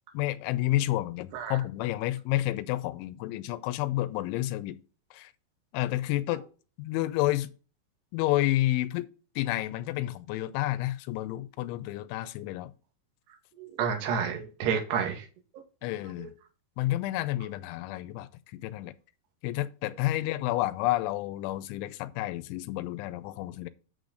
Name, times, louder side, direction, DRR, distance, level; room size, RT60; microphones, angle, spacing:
voice 1, 0.1-4.8 5.1-5.3 5.7-6.4 6.8-7.5 8.1-9.1 9.4-12.7 15.8-16.3 16.8-18.9 19.4-23.7, left 16 dB, 85° left, 3.0 m, -30 dB
voice 2, 13.6-15.3 16.2-16.3, right 7 dB, 65° right, 3.7 m, -30 dB
8.9 x 6.5 x 3.9 m
omnidirectional pair, 5.5 m